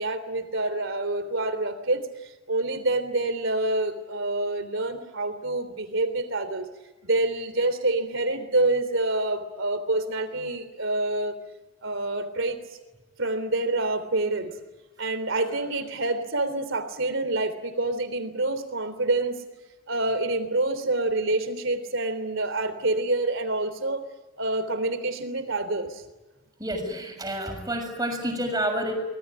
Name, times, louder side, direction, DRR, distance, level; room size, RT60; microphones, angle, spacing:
voice 1, 0.0-2.1 2.5-6.7 7.0-11.4 11.8-12.6 13.2-14.5 15.0-19.4 19.9-24.0 24.4-26.0, right 2 dB, 65° right, 11 dB, 3.4 m, -27 dB
voice 2, 26.6-28.9, right 1 dB, 20° right, 4 dB, 6.6 m, -29 dB
25.0 x 20.5 x 9.7 m, 1.2 s
head